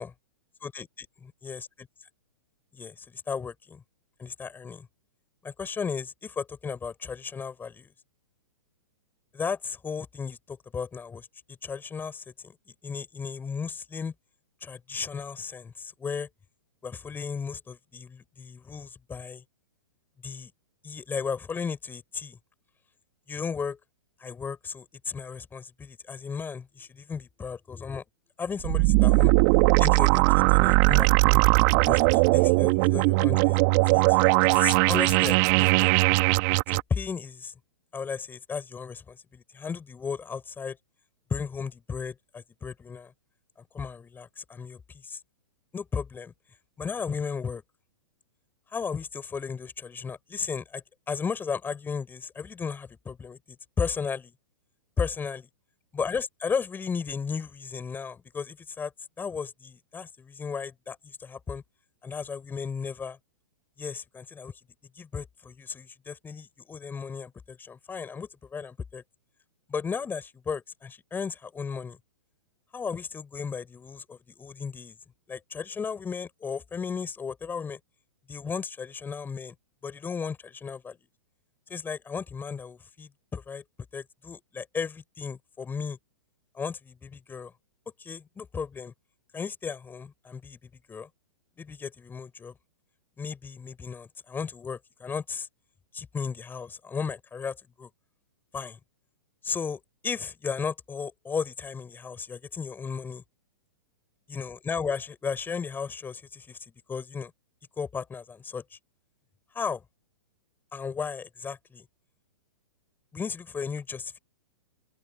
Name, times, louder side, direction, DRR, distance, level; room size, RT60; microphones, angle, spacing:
voice 1, 0.6-1.7 2.7-3.8 4.2-4.9 5.4-7.9 9.3-12.6 12.8-14.1 14.6-16.3 16.8-19.4 20.2-20.5 20.8-22.4 23.3-23.8 24.2-28.0 28.4-29.3 29.8-31.4 31.8-33.6 33.9-35.9 36.7-37.5 37.9-40.8 41.3-43.1 43.7-45.2 45.7-46.3 46.8-47.6 48.7-53.4 53.8-54.3 55.0-55.5 55.9-58.9 59.2-61.6 62.0-63.2 63.8-64.5 65.0-69.0 69.7-72.0 72.7-75.0 75.3-77.8 78.3-79.5 79.8-81.0 81.7-83.6 83.9-86.0 86.5-87.5 88.0-88.9 89.3-90.6 90.9-91.1 91.6-92.5 93.2-95.5 95.9-97.9 98.5-98.8 99.4-103.2 104.3-106.6 106.9-107.3 107.8-108.8 109.5-109.8 110.7-111.8 113.1-114.2, left 6 dB, 15° left, 7.6 m, -35 dB
sound 1, 28.6-36.8, right 30 dB, 40° right, 2.6 m, -20 dB
open air
hypercardioid pair, 115°, 13 cm